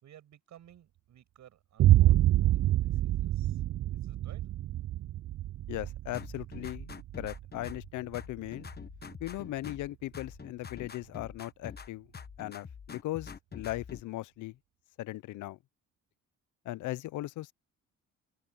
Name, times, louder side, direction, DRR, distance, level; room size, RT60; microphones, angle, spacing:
voice 1, 0.0-4.4, right 11 dB, 70° right, 6.3 m, -57 dB
Boom, 1.8-9.6, right 14 dB, 50° right, 0.4 m, -28 dB
voice 2, 5.7-6.9 7.2-8.7 9.2-12.1 12.4-14.6 15.0-15.6 16.7-17.5, left 16 dB, 80° left, 0.6 m, -38 dB
sound 1, 6.1-9.9 10.1-11.9 12.1-14.0, left 6 dB, 30° left, 1.2 m, -45 dB
cardioid pair, 90°, 30 cm